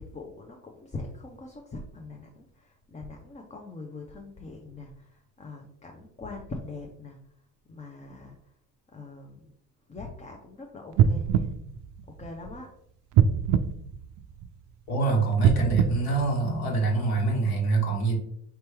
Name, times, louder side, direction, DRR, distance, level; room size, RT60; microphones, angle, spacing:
voice 1, 0.0-7.2 7.6-8.5 8.9-9.5 9.9-11.5 12.1-12.7, left 3 dB, 15° left, 1 dB, 0.6 m, -42 dB
sound 1, 10.9-12.6 13.1-14.7 15.3-17.0 17.6-17.7, right 8 dB, 50° right, 0.5 m, -24 dB
voice 2, 14.9-18.2, right 3 dB, 55° left, 0 dB, 1.8 m, -25 dB
4.5 x 2.9 x 3.4 m, 0.71 s
hypercardioid pair, 75°, 44 cm